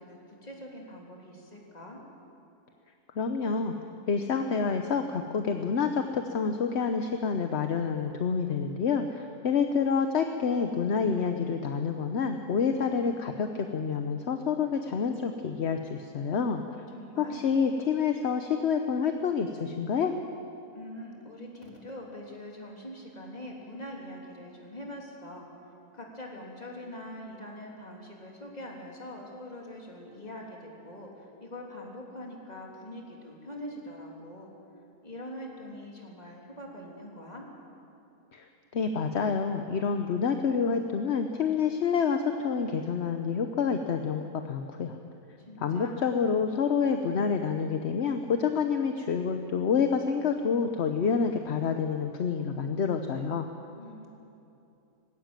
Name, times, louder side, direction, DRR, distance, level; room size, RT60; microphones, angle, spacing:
voice 1, 0.0-2.0 16.9-17.5 20.7-25.5 25.9-34.5 35.0-37.5 45.4-46.1 53.7-54.1, left 1 dB, 25° left, -1 dB, 3.3 m, -43 dB
voice 2, 3.2-3.7 4.1-16.6 17.2-20.1 38.3-38.5 38.7-45.0 45.6-53.5, left 6 dB, 50° left, 6 dB, 1.0 m, -28 dB
19.5 x 16.5 x 9.0 m, 2.8 s
omnidirectional pair, 1.7 m